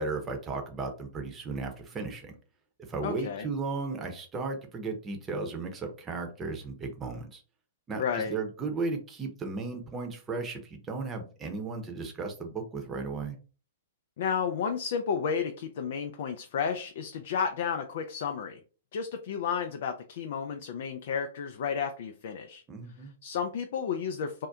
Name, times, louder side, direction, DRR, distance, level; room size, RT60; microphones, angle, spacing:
voice 1, 0.0-2.4 2.9-7.4 7.9-13.4 22.7-23.1, right 3 dB, 20° right, 3 dB, 0.8 m, -35 dB
voice 2, 3.0-3.5 8.0-8.4 14.2-18.6 18.9-22.6 23.2-24.5, left 6 dB, 60° left, 6 dB, 0.4 m, -32 dB
2.7 x 2.1 x 3.5 m, 0.37 s
hypercardioid pair, 120°, 0 cm